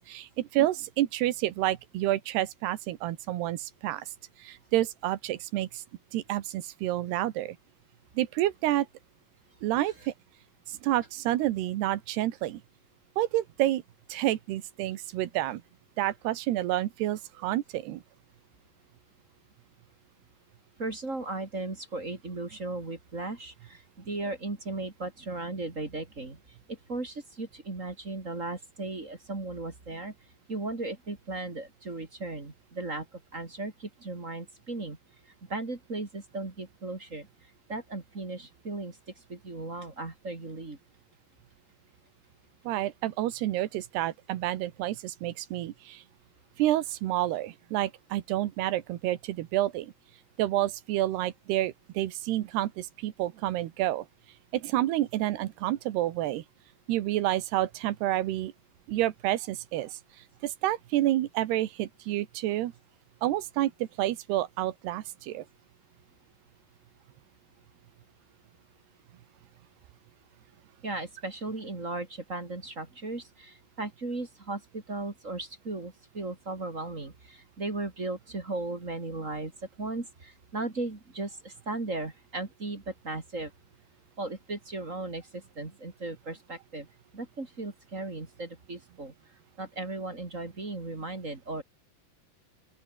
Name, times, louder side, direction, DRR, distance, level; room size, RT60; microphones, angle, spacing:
voice 1, 0.1-4.1 4.4-5.8 6.1-7.6 8.2-8.9 9.6-10.1 10.7-12.6 13.2-13.8 14.1-15.6 16.0-18.0 42.7-46.0 46.6-49.9 50.4-54.1 54.5-56.4 56.9-58.5 58.9-60.0 60.4-62.7 63.2-65.5, right 14 dB, 90° right, 3.4 m, -29 dB
voice 2, 20.8-26.4 26.7-30.1 30.5-35.0 35.5-37.3 37.7-39.0 39.3-40.8 70.8-83.5 84.2-86.9 87.1-89.1 89.6-91.6, right 2 dB, 20° right, 2.5 m, -36 dB
open air
omnidirectional pair, 4.6 m